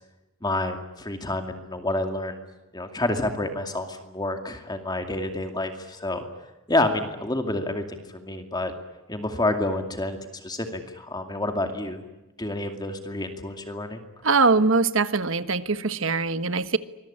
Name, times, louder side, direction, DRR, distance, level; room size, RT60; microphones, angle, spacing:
voice 1, 0.4-2.4 2.7-6.3 6.7-8.7 9.1-12.0 12.4-14.0, left 2 dB, 20° left, 6 dB, 2.4 m, -28 dB
voice 2, 14.2-16.8, right 4 dB, 65° right, 12 dB, 1.4 m, -22 dB
25.0 x 22.0 x 10.0 m, 1.0 s
head